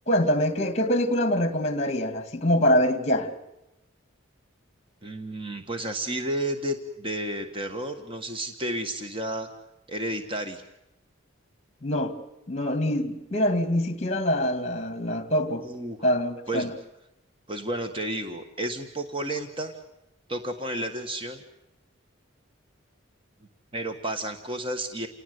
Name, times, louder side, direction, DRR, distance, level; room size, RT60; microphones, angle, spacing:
voice 1, 0.1-3.3 11.8-12.1 12.5-15.6 16.0-16.7, equal, 35° left, 2.3 m, -24 dB
voice 2, 5.0-9.5 9.9-10.6 15.6-16.1 16.5-16.7 17.5-19.8 20.3-21.4 23.7-25.1, right 1 dB, 25° right, 1.5 m, -32 dB
29.5 x 18.5 x 8.2 m
head